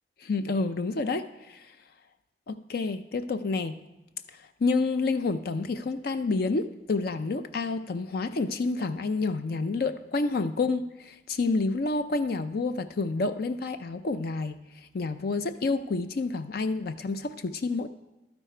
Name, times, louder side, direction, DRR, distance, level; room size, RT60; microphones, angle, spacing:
voice 1, 0.2-1.7 2.5-3.8 4.3-14.6 14.9-17.9, left 3 dB, 60° left, 10 dB, 0.5 m, -29 dB
12.0 x 9.7 x 4.4 m, 1.0 s
head